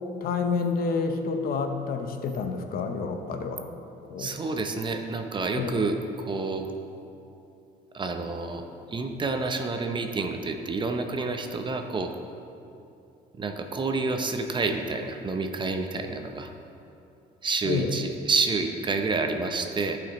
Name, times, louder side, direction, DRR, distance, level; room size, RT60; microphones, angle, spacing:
voice 1, 0.2-3.7 4.1-4.3 5.6-5.9 17.6-17.9, left 4 dB, 60° left, 6 dB, 0.7 m, -29 dB
voice 2, 4.2-6.7 7.9-12.1 13.4-16.5 17.4-20.0, right 3 dB, 30° right, 5 dB, 0.6 m, -29 dB
14.0 x 5.1 x 3.0 m, 2.7 s
cardioid pair, 110°, 17 cm